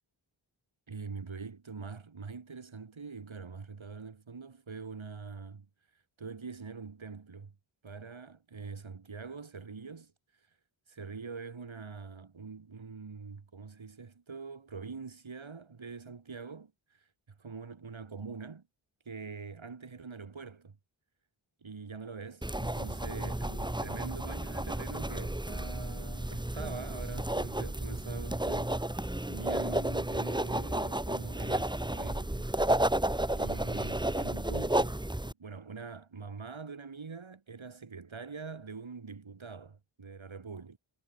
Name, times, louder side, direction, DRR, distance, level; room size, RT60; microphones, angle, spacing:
voice 1, 0.9-5.7 6.2-7.5 7.8-10.1 10.9-17.1 17.4-18.6 19.1-20.8 21.6-28.8 29.3-32.5 33.3-35.0 35.3-40.8, right 5 dB, 75° right, 6.0 m, -44 dB
sound 1, 22.4-35.3, right 1 dB, 10° right, 1.6 m, -32 dB
cardioid pair, 50°, 48 cm